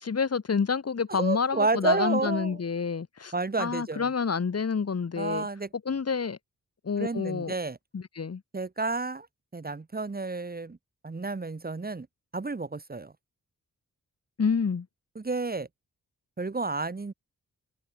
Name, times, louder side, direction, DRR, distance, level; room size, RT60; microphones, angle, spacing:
voice 1, 0.0-3.3 3.6-5.5 5.8-6.4 6.8-7.5 7.9-8.4 14.4-14.9, left 5 dB, 45° left, 1.6 m, -28 dB
voice 2, 1.1-2.6 3.3-4.1 5.2-5.7 7.0-7.8 8.5-9.3 9.5-10.8 11.0-12.1 12.3-13.1 15.1-15.7 16.4-17.1, right 3 dB, 25° right, 1.3 m, -30 dB
open air
wide cardioid pair, 105°, 33 cm